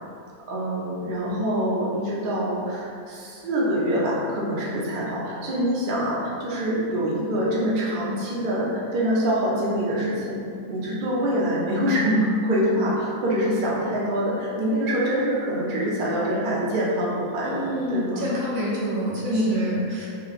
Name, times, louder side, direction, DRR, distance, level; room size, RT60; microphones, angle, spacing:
voice 1, 0.5-10.4 10.7-18.2 19.3-19.6, equal, 50° right, -6 dB, 0.6 m, -25 dB
voice 2, 17.4-20.1, equal, 75° right, -6 dB, 1.1 m, -28 dB
3.0 x 2.7 x 2.4 m, 2.4 s
omnidirectional pair, 1.4 m